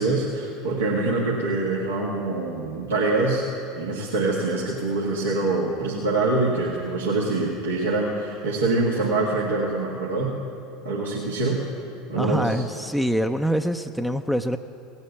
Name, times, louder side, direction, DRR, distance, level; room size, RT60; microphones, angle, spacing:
voice 1, 0.0-3.4 3.8-10.3 10.8-11.6 12.1-12.6, right 3 dB, 85° right, -5 dB, 1.8 m, -24 dB
voice 2, 12.2-14.6, equal, ahead, 7 dB, 0.5 m, -25 dB
17.5 x 8.3 x 8.0 m, 2.7 s
hypercardioid pair, 80°, 0 cm